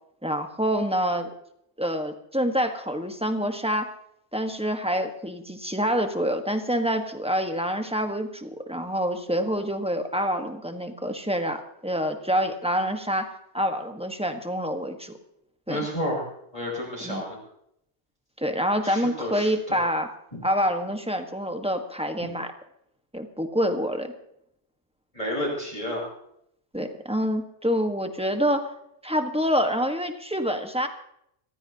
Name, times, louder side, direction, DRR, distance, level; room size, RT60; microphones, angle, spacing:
voice 1, 0.2-1.3 1.8-3.9 4.3-15.1 15.7-15.8 17.0-17.2 18.4-20.1 20.4-22.5 23.1-24.1 26.7-28.7 29.0-30.9, equal, 5° right, 5 dB, 1.3 m, -27 dB
voice 2, 15.7-16.3 16.5-17.4 18.8-19.8 20.3-20.4 25.1-26.1, equal, 35° left, -4 dB, 6.5 m, -31 dB
24.5 x 16.0 x 2.9 m, 0.76 s
omnidirectional pair, 1.1 m